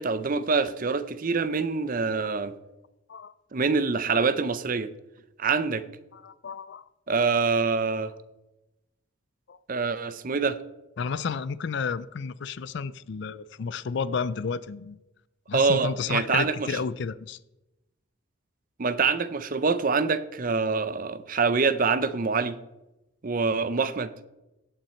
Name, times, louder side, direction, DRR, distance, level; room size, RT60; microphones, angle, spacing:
voice 1, 0.0-2.5 3.5-4.9 5.4-5.9 7.1-8.1 9.7-10.6 15.5-16.8 18.8-22.6 23.2-24.1, right 4 dB, 40° right, 0.6 m, -25 dB
voice 2, 6.1-6.9 9.5-9.6 11.0-15.0 15.5-17.4, left 5 dB, 55° left, 0.4 m, -31 dB
16.5 x 6.0 x 4.3 m
head